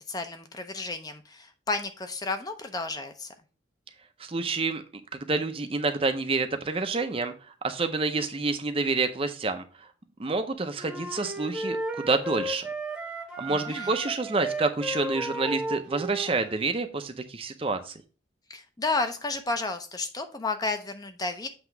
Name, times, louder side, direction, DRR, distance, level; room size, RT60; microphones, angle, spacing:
voice 1, 0.1-3.3 13.5-13.9 18.5-21.5, left 3 dB, 20° left, 7 dB, 0.6 m, -32 dB
voice 2, 4.2-4.8 5.1-7.3 7.6-9.6 10.2-12.7 13.4-18.0, right 3 dB, 30° right, 8 dB, 0.6 m, -28 dB
sound 1, 10.8-16.6, right 1 dB, 5° right, 0.9 m, -34 dB
7.9 x 2.9 x 5.7 m, 0.36 s
head